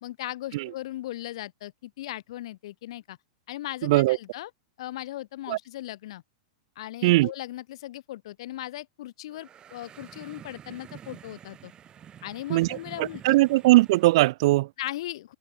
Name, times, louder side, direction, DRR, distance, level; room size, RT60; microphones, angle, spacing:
voice 1, 0.0-3.2 3.5-4.5 4.8-6.2 6.8-11.7 12.2-13.3 14.8-15.3, left 15 dB, 65° left, 0.5 m, -38 dB
voice 2, 3.8-4.2 5.5-5.6 7.0-7.3 12.5-14.7, right 19 dB, 60° right, 0.3 m, -20 dB
sound 1, 9.3-14.3, right 9 dB, 25° right, 2.4 m, -48 dB
hypercardioid pair, 110°, 3 cm